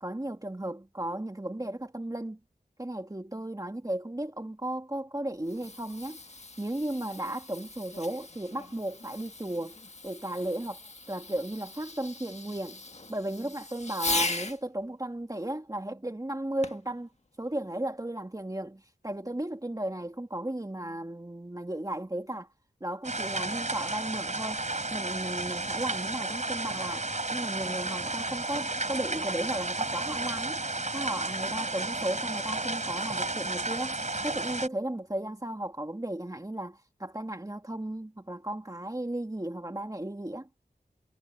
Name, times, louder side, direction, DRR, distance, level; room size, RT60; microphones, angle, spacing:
voice 1, 0.0-2.4 2.8-6.2 6.6-9.8 10.0-10.8 11.1-12.8 13.1-17.1 17.4-22.5 22.8-24.6 24.9-27.0 27.3-30.6 30.9-34.0 34.2-40.5, right 1 dB, 20° right, 1.8 m, -35 dB
Fireworks, 5.3-14.6 16.6-17.0 17.7-17.8, left 2 dB, 40° left, 1.5 m, -38 dB
sound 1, 23.0-34.7, right 2 dB, 45° right, 3.6 m, -32 dB
wide cardioid pair, 55°, 17 cm